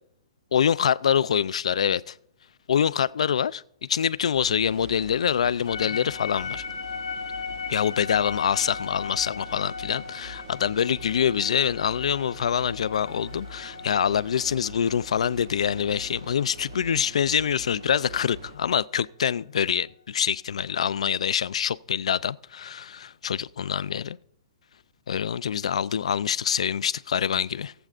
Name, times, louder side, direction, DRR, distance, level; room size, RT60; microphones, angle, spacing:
voice 1, 0.5-2.2 2.7-3.6 3.9-6.6 7.7-24.2 25.1-27.7, left 8 dB, 70° left, 0.4 m, -25 dB
sound 1, 4.3-18.6, right 2 dB, 45° right, 1.1 m, -44 dB
sound 2, 5.7-17.8, left 6 dB, 90° left, 1.2 m, -38 dB
20.0 x 7.8 x 2.5 m
hypercardioid pair, 180°, 3 cm